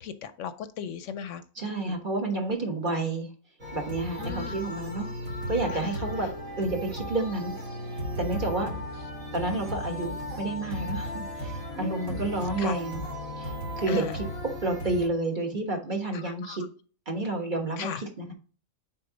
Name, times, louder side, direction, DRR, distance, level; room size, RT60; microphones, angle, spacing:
voice 1, 0.0-1.4 1.7-2.0 4.2-4.7 5.8-5.9 8.6-8.8 11.7-12.3 12.6-12.8 13.9-14.2 16.1-16.6 17.8-18.0, left 8 dB, 75° left, 11 dB, 0.9 m, -37 dB
voice 2, 1.6-3.3 3.7-5.1 5.5-6.3 6.6-7.5 8.2-8.7 9.3-13.0 13.4-14.3 14.6-16.6 17.1-18.3, right 2 dB, 40° right, 2 dB, 1.4 m, -30 dB
sound 1, 3.6-15.1, equal, 65° right, 2.2 m, -35 dB
6.5 x 4.3 x 3.9 m, 0.39 s
omnidirectional pair, 1.4 m